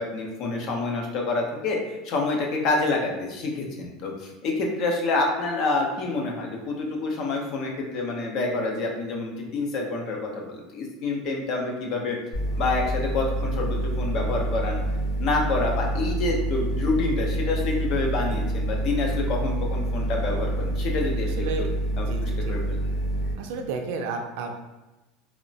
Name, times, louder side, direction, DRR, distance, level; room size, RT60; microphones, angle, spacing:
voice 1, 0.0-1.8 2.0-12.2 12.6-14.8 15.2-21.5 22.0-22.8, left 3 dB, 45° left, 1 dB, 0.5 m, -27 dB
sound 1, 12.3-23.3, right 1 dB, 80° left, 1.3 m, -27 dB
voice 2, 21.4-21.7 22.0-22.5 23.4-24.5, right 4 dB, 70° right, 4 dB, 0.4 m, -32 dB
2.9 x 2.1 x 2.6 m, 1.1 s
cardioid pair, 165°, 0 cm